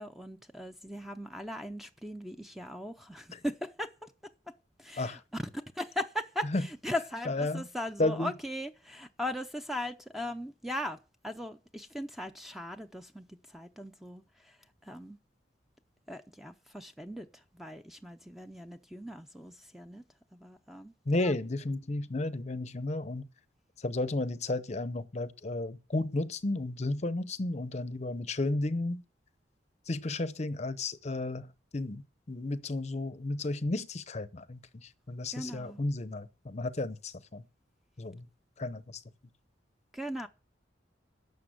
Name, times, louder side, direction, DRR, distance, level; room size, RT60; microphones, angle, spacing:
voice 1, 0.0-4.1 4.8-5.4 5.8-11.0 11.2-13.3 13.5-14.5 14.8-15.2 16.1-17.3 17.5-20.0 20.3-20.9 21.2-21.3 35.3-35.8 39.9-40.3, left 1 dB, ahead, 0.6 m, -39 dB
voice 2, 7.3-7.6 8.0-8.3 21.1-23.3 23.8-29.0 29.9-31.5 31.7-32.0 32.3-37.4 38.0-38.3 38.6-38.8, left 2 dB, 35° left, 0.7 m, -33 dB
11.5 x 6.7 x 7.8 m
head